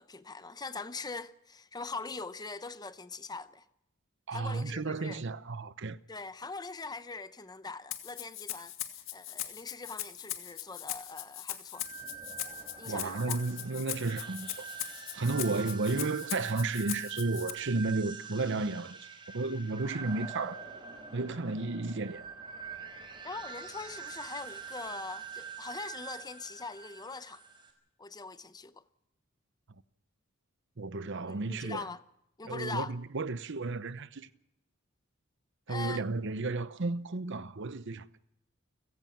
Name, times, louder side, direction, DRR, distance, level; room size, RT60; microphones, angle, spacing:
voice 1, 0.0-3.7 4.3-5.2 6.1-11.9 12.8-13.4 15.4-15.6 23.2-27.4 28.0-28.8 31.3-32.0 32.4-32.9 35.7-36.0, left 4 dB, 20° left, 0.8 m, -42 dB
voice 2, 4.3-6.0 12.8-14.7 15.1-19.1 19.3-20.6 21.1-22.2 30.8-31.8 32.4-34.3 35.7-38.2, right 3 dB, 60° right, 0.9 m, -33 dB
Rattle (instrument), 7.9-17.5, left 12 dB, 65° left, 2.0 m, -40 dB
sound 1, 11.7-27.7, right 6 dB, 25° right, 4.6 m, -45 dB
29.5 x 17.0 x 6.0 m
head